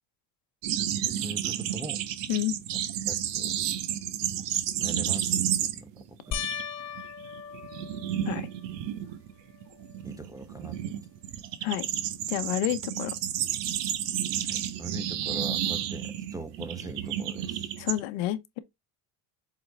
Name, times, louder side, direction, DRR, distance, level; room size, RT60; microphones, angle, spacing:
sound 1, 0.6-6.0 6.3-6.6 7.0-18.0, right 11 dB, 65° right, 1.0 m, -31 dB
voice 1, 1.1-2.0 3.1-3.6 4.8-6.5 10.0-10.8 14.5-17.7, right 2 dB, 10° right, 0.3 m, -41 dB
sound 2, 6.3-8.9 9.5-10.1 10.4-10.5 13.7-13.8, left 8 dB, 35° left, 0.8 m, -38 dB
voice 2, 12.3-13.1 17.8-18.6, left 13 dB, 85° left, 1.0 m, -29 dB
7.5 x 3.8 x 3.3 m
cardioid pair, 115°, 47 cm